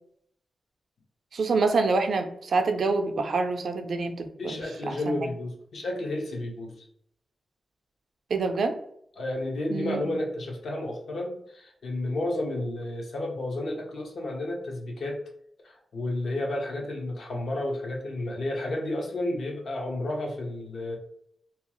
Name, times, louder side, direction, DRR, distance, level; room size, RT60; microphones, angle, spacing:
voice 1, 1.3-4.6 4.9-5.0 8.3-8.8 9.7-10.2, right 3 dB, 65° right, 6 dB, 0.4 m, -26 dB
voice 2, 4.4-6.7 9.2-15.2 15.6-21.0, left 1 dB, 70° left, 0 dB, 0.7 m, -31 dB
2.8 x 2.3 x 2.9 m, 0.69 s
wide cardioid pair, 120°, 0 cm